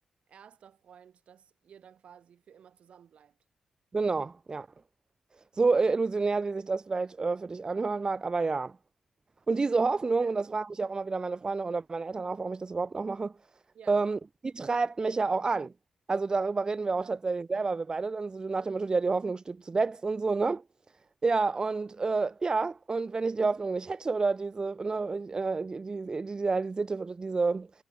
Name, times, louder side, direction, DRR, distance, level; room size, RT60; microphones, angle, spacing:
voice 1, 0.3-3.4 10.2-10.3 13.7-14.1 17.0-17.2, right 8 dB, 75° right, 5.6 m, -54 dB
voice 2, 3.9-4.7 5.5-8.7 9.5-13.3 13.9-15.7 16.1-20.6 21.2-27.7, right 4 dB, 40° right, 1.0 m, -29 dB
supercardioid pair, 50°, 2 cm